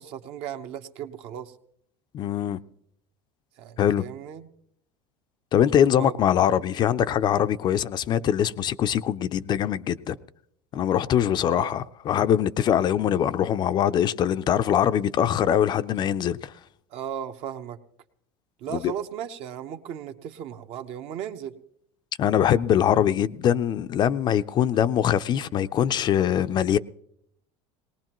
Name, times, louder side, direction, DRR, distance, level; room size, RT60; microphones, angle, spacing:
voice 1, 0.0-1.6 3.6-4.5 6.0-6.1 11.5-11.7 16.9-17.8 18.6-21.5, right 9 dB, 60° right, 1.0 m, -36 dB
voice 2, 2.1-2.6 3.8-4.0 5.5-10.2 10.7-16.5 18.7-18.9 22.2-26.8, left 9 dB, 40° left, 0.5 m, -23 dB
19.5 x 18.5 x 3.0 m
supercardioid pair, 120°, 12 cm